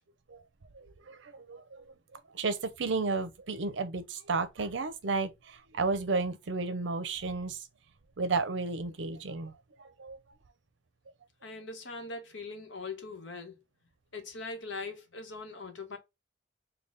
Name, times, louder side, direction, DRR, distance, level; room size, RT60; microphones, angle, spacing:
voice 1, 0.7-1.8 2.3-7.6 8.2-9.5 9.8-10.2, right 3 dB, 80° right, 0.6 m, -33 dB
voice 2, 11.4-13.6 14.1-16.0, left 3 dB, 80° left, 1.0 m, -41 dB
3.9 x 2.2 x 3.3 m
head